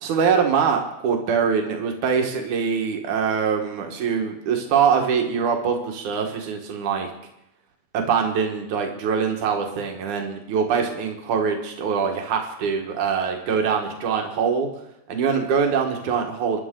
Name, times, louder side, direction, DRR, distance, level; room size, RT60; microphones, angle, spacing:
voice 1, 0.0-7.1 7.9-14.7 15.1-16.6, right 6 dB, 80° right, 2 dB, 3.1 m, -23 dB
29.5 x 11.0 x 3.9 m, 0.85 s
omnidirectional pair, 3.5 m